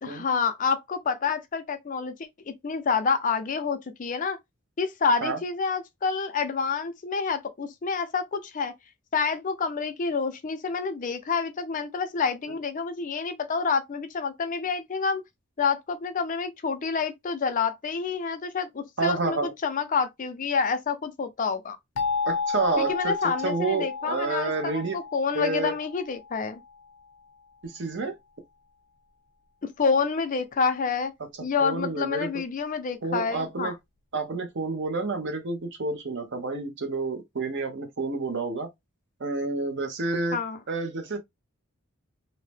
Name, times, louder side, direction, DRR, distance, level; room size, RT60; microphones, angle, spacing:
voice 1, 0.0-2.1 2.5-4.4 4.8-8.7 9.1-15.2 15.6-21.8 22.8-26.6 29.6-31.1 31.4-33.7 40.3-40.6, left 5 dB, 40° left, 0.4 m, -28 dB
voice 2, 19.0-19.5 22.3-23.1 23.4-25.0 25.3-25.7 27.6-28.1 31.6-32.3 33.0-33.7 34.1-38.7 39.2-40.4 40.7-41.2, right 3 dB, 55° right, 0.7 m, -29 dB
sound 1, 22.0-26.7, left 5 dB, 85° left, 0.6 m, -32 dB
2.7 x 2.1 x 3.2 m
head